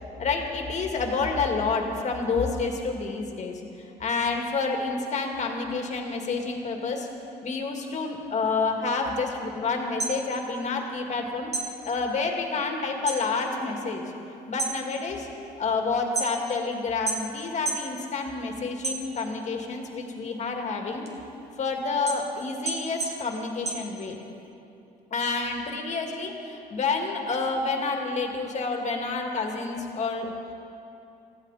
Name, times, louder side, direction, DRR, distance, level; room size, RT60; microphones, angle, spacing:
voice 1, 0.2-7.1 7.4-11.5 11.8-14.1 14.5-15.3 15.6-21.0 21.6-24.1 25.1-30.3, left 4 dB, 45° left, 2 dB, 2.1 m, -29 dB
sound 1, 9.8-11.2 11.5-13.3 13.6-14.1 14.4-16.6 17.1-17.9 18.3-19.5 19.9-24.5, right 3 dB, 40° right, 2.2 m, -33 dB
20.5 x 15.0 x 4.2 m, 2.7 s
cardioid pair, 110°, 17 cm